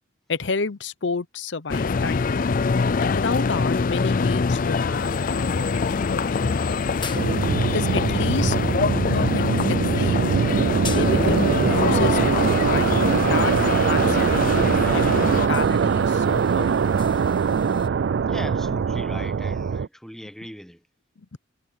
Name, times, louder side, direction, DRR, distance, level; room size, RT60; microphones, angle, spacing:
voice 1, 0.3-2.3 3.0-6.6 7.6-8.6 9.1-9.4 9.7-10.2 10.9-13.5 13.9-16.8, left 4 dB, 65° left, 0.8 m, -30 dB
sound 1, 1.7-15.5, left 4 dB, 45° left, 0.4 m, -24 dB
sound 2, 4.9-17.9, left 5 dB, 25° left, 1.5 m, -42 dB
sound 3, 7.1-19.9, right 6 dB, 65° right, 0.4 m, -22 dB
voice 2, 18.3-20.8, equal, ahead, 1.2 m, -39 dB
head